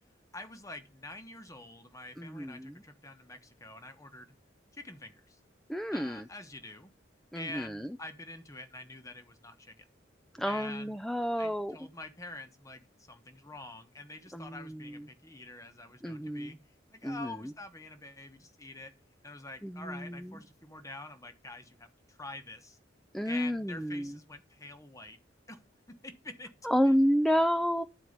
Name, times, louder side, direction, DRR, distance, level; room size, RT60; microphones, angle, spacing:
voice 1, 0.3-4.3 4.7-5.4 5.9-6.9 7.3-9.9 10.5-10.9 11.4-12.8 13.1-16.6 16.9-18.9 19.2-22.8 23.2-25.2 25.5-25.6 25.9-26.5 26.8-26.9, left 2 dB, 15° left, 1.1 m, -46 dB
voice 2, 2.2-2.7 5.7-6.3 7.3-8.0 10.3-11.8 14.3-15.0 16.0-16.6 17.0-17.5 19.6-20.3 23.1-24.2 26.6-27.8, equal, ahead, 0.4 m, -30 dB
11.0 x 4.6 x 6.5 m
head